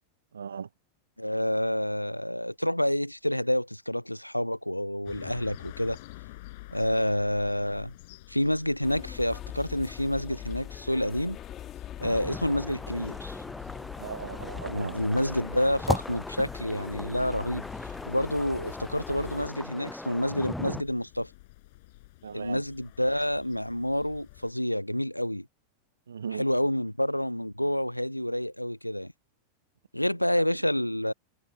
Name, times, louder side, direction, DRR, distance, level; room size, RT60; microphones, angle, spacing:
voice 1, 0.3-0.7 6.9-7.0 14.0-15.0 22.2-22.6 26.1-26.5 30.4-30.5, right 7 dB, 70° right, 0.7 m, -37 dB
voice 2, 1.2-6.0 6.7-7.9 8.3-11.4 12.0-13.4 14.7-17.7 18.1-21.3 22.3-25.5 26.4-29.1 29.9-31.1, equal, 90° left, 0.5 m, -28 dB
sound 1, 5.1-24.5, left 21 dB, 50° left, 5.3 m, -51 dB
sound 2, 8.8-19.5, left 11 dB, 30° left, 2.0 m, -42 dB
sound 3, 12.0-20.8, left 1 dB, 5° left, 0.4 m, -38 dB
figure-of-eight pair, 90°, 0 cm